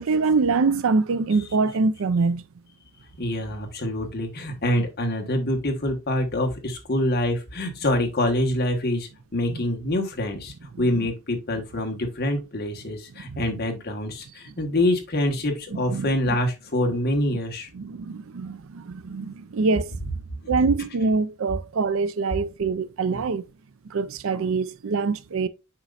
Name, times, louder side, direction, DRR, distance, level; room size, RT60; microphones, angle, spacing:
voice 1, 0.0-2.4 9.5-9.6 10.7-11.1 13.3-13.4 15.7-16.4 17.7-19.9 20.5-23.4 23.9-25.5, right 4 dB, 65° right, 0.4 m, -24 dB
voice 2, 3.2-17.7 23.1-23.2, left 1 dB, 45° left, 1.3 m, -26 dB
7.3 x 5.2 x 2.5 m
head